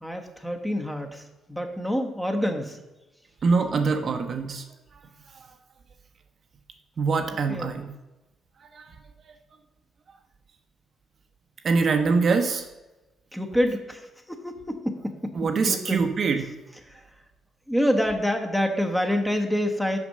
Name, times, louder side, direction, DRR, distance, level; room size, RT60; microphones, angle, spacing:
voice 1, 0.0-1.2 1.5-2.8 7.5-7.7 13.3-14.0 14.3-16.0 16.9-17.0 17.7-20.0, equal, 5° left, 4 dB, 1.1 m, -27 dB
voice 2, 3.4-4.6 7.0-7.9 8.7-8.8 11.6-12.6 15.4-16.5, right 4 dB, 50° right, 5 dB, 0.9 m, -23 dB
6.1 x 5.1 x 6.6 m, 1.0 s
cardioid pair, 90°, 0 cm